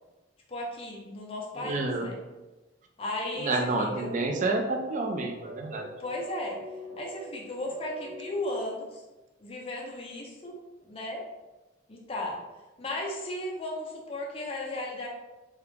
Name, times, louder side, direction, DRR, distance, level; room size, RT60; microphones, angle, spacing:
voice 1, 0.5-2.2 3.0-4.1 6.0-6.6 7.0-9.0 9.4-11.2 11.9-12.4 12.8-15.1, left 1 dB, 30° left, -1 dB, 0.5 m, -35 dB
voice 2, 1.6-2.1 3.4-5.9, right 2 dB, 40° right, 3 dB, 0.3 m, -29 dB
sound 1, 3.9-8.8, right 1 dB, 70° right, 0.7 m, -44 dB
2.4 x 2.0 x 3.1 m, 1.1 s
head